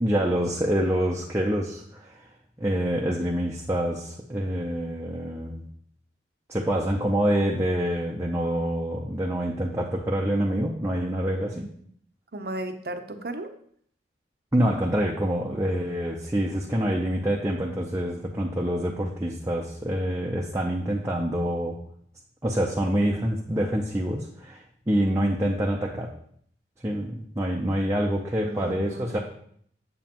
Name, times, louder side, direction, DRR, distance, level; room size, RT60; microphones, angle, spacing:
voice 1, 0.0-2.3 2.6-5.6 6.5-11.7 14.5-21.8 22.4-26.1 26.8-29.2, equal, 15° right, -2 dB, 0.5 m, -26 dB
voice 2, 12.3-13.5 28.4-29.2, right 1 dB, 55° right, 7 dB, 0.7 m, -35 dB
7.9 x 7.3 x 2.9 m, 0.64 s
head